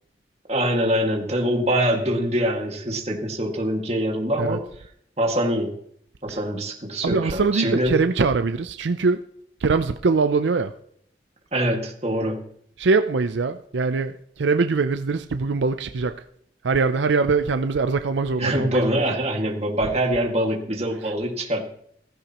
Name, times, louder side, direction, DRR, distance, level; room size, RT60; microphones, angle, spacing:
voice 1, 0.5-4.6 5.2-5.7 6.2-8.0 11.5-12.4 18.4-21.7, right 1 dB, 35° right, 2.0 m, -24 dB
voice 2, 7.0-9.2 9.6-10.7 12.8-16.2 16.6-18.9, right 4 dB, 85° right, 0.5 m, -22 dB
15.5 x 15.0 x 3.0 m
head